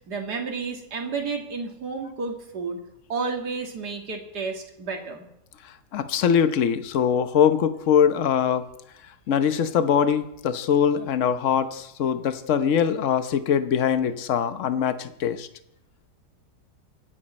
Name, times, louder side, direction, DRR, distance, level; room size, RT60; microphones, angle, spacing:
voice 1, 0.1-2.8 3.1-5.3, right 4 dB, 70° right, 2 dB, 2.6 m, -31 dB
voice 2, 5.6-8.6 9.3-15.5, left 8 dB, 50° left, 10 dB, 1.2 m, -22 dB
24.5 x 10.0 x 4.4 m, 0.77 s
omnidirectional pair, 1.8 m